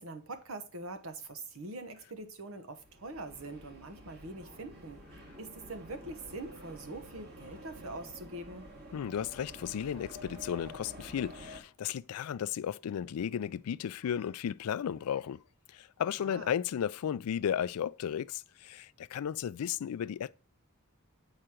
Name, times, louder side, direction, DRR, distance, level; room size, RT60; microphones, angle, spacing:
voice 1, 0.0-5.0 5.4-8.7 16.2-16.5, right 2 dB, 70° right, 1.0 m, -43 dB
sound 1, 2.7-11.6, equal, 45° right, 2.1 m, -50 dB
voice 2, 8.9-15.4 15.7-20.3, left 9 dB, 85° left, 0.3 m, -34 dB
7.8 x 5.0 x 4.4 m
head